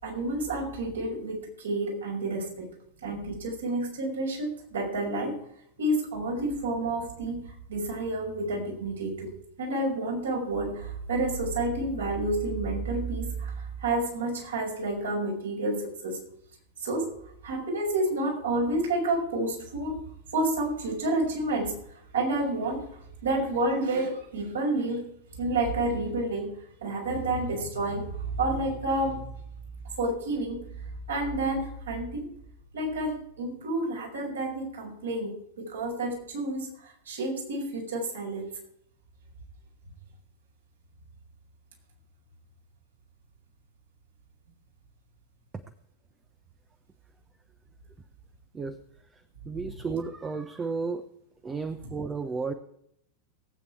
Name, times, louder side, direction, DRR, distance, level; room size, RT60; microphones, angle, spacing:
voice 1, 0.0-2.7 3.0-5.3 5.8-9.3 9.6-16.2 16.8-17.1 17.4-20.0 20.3-26.6 26.8-29.4 30.0-32.3 32.7-38.4 49.6-49.8 51.8-51.9, right 2 dB, 70° right, -1 dB, 6.0 m, -30 dB
voice 2, 49.5-51.0 51.4-52.5, right 4 dB, 20° right, 9 dB, 0.9 m, -32 dB
18.5 x 8.7 x 4.8 m, 0.73 s
figure-of-eight pair, 90°, 0 cm